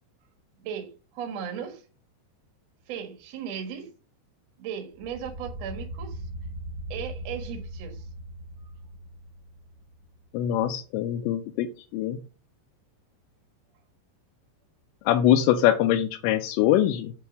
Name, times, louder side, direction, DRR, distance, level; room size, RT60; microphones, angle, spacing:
voice 1, 0.6-1.8 2.9-3.9 4.6-6.2 6.9-8.1, right 8 dB, 60° right, 1.7 m, -36 dB
sound 1, 4.9-10.2, right 1 dB, 30° right, 1.0 m, -39 dB
voice 2, 10.3-11.7 11.9-12.2 15.1-17.1, left 11 dB, 90° left, 2.8 m, -23 dB
9.4 x 3.4 x 5.1 m
omnidirectional pair, 5.0 m